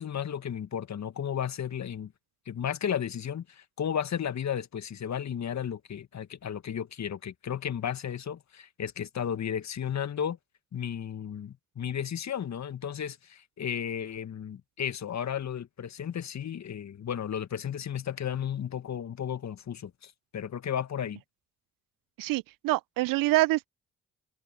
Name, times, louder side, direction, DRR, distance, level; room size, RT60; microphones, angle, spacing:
voice 1, 0.0-2.1 2.5-10.4 10.7-21.2, left 8 dB, 50° left, 2.0 m, -34 dB
voice 2, 22.2-23.7, right 19 dB, 65° right, 0.8 m, -26 dB
hypercardioid pair, 45°, 36 cm